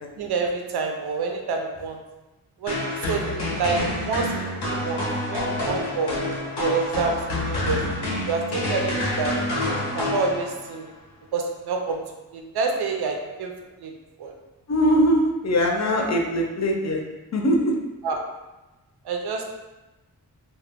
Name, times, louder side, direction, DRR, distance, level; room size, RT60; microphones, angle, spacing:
voice 1, 0.2-2.0 2.6-6.1 6.5-7.8 8.3-9.3 9.9-10.9 11.3-12.0 12.3-13.5 13.8-13.9 14.2-14.3 16.0-16.1 18.0-18.2 19.0-19.4, right 4 dB, 85° right, 2 dB, 0.5 m, -28 dB
sound 1, 2.7-10.8, left 1 dB, 90° left, 0.8 m, -27 dB
voice 2, 14.7-17.0 17.3-17.7, equal, 45° left, 1 dB, 0.6 m, -21 dB
2.3 x 2.1 x 3.5 m, 1.1 s
cardioid pair, 65°, 38 cm